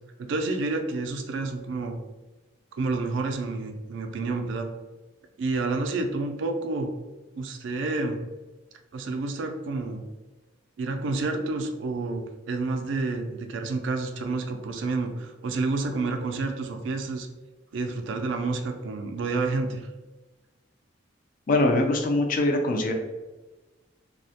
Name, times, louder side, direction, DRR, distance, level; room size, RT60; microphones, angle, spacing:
voice 1, 0.2-2.0 2.8-4.7 5.4-6.9 7.3-8.2 8.9-10.0 10.8-17.3 17.7-19.9, right 3 dB, 75° right, 5 dB, 0.3 m, -29 dB
voice 2, 21.5-22.9, left 2 dB, 45° left, 3 dB, 0.3 m, -22 dB
2.3 x 2.0 x 2.7 m, 1.2 s
head